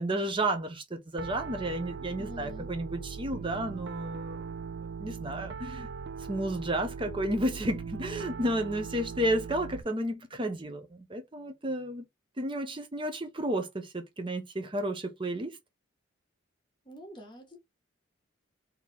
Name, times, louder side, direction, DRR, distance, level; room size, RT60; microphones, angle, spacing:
voice 1, 0.0-4.5 5.0-5.9 6.2-12.0 12.4-15.6, right 1 dB, 25° right, 0.8 m, -32 dB
Piano, 1.2-9.8, right 5 dB, 55° right, 0.4 m, -40 dB
voice 2, 2.2-2.7 16.8-17.6, equal, 25° left, 1.4 m, -46 dB
4.2 x 2.9 x 3.5 m
head